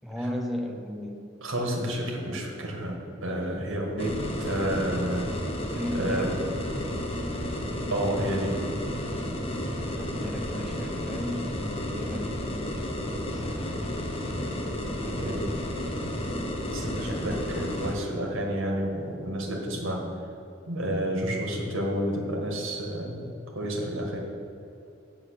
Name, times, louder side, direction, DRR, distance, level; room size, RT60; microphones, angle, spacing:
voice 1, 0.0-1.3 5.7-6.4 9.9-12.3 12.7-12.9 13.1-13.9 15.0-15.5, equal, ahead, 1 dB, 0.8 m, -35 dB
voice 2, 1.4-5.3 5.9-6.3 7.9-8.6 15.2-15.5 16.7-20.1 20.7-23.2 23.5-24.2, right 1 dB, 65° right, 0 dB, 1.8 m, -30 dB
sound 1, 4.0-17.9, equal, 25° left, 1.0 m, -32 dB
7.8 x 6.9 x 6.6 m, 2.7 s
head